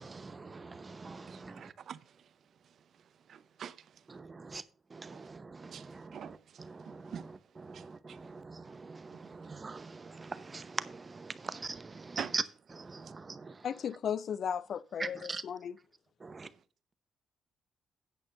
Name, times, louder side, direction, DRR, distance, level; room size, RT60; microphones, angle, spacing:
voice 1, 0.0-1.6 4.1-4.6 4.9-7.3 7.6-12.4 12.7-13.5 15.0-15.4 16.2-16.5, right 4 dB, 30° right, 0.8 m, -42 dB
voice 2, 1.3-2.0 3.3-3.8 5.7-5.9 6.1-6.3 6.9-7.3 7.7-7.8 8.1-8.2 12.2-12.3, right 8 dB, 60° right, 0.6 m, -43 dB
voice 3, 13.6-15.8, left 8 dB, 60° left, 0.4 m, -35 dB
9.2 x 5.4 x 6.4 m
cardioid pair, 90°, 0 cm